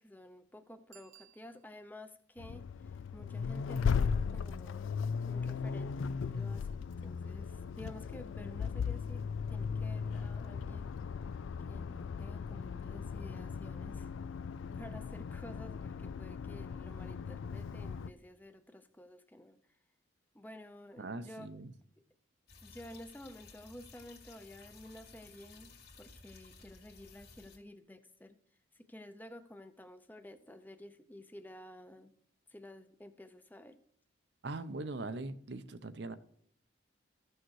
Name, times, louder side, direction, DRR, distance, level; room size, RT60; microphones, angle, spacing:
voice 1, 0.0-9.2 9.5-10.9 11.7-14.1 14.7-19.6 20.3-21.5 22.0-22.1 22.6-28.4 28.7-32.1 32.5-33.8, left 1 dB, 10° left, 0.6 m, -52 dB
Bicycle bell, 0.9-2.1 7.5-7.6, right 13 dB, 80° right, 1.0 m, -61 dB
Accelerating revving vroom, 2.4-18.1, left 6 dB, 80° left, 0.3 m, -37 dB
voice 2, 21.0-21.7 34.4-36.2, right 2 dB, 60° right, 0.7 m, -41 dB
sound 1, 22.5-27.6, left 4 dB, 50° left, 2.0 m, -56 dB
14.0 x 6.5 x 4.8 m
head